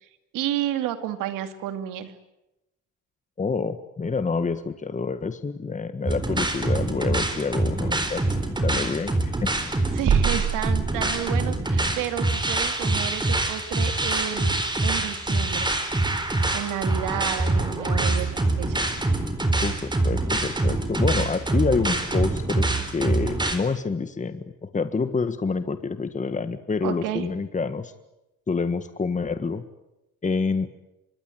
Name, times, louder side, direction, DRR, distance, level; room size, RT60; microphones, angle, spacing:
voice 1, 0.3-2.1 9.9-15.7 16.5-18.9 26.8-27.3, right 12 dB, 85° right, 9 dB, 2.5 m, -31 dB
voice 2, 3.4-9.5 19.6-27.9 28.5-29.6 30.2-30.7, left 4 dB, 25° left, 10 dB, 1.6 m, -27 dB
sound 1, 6.1-23.6, right 2 dB, 15° right, 4.3 m, -25 dB
sound 2, 10.1-11.7, right 8 dB, 55° right, 2.4 m, -25 dB
25.5 x 21.5 x 9.3 m, 0.92 s
cardioid pair, 90°, 31 cm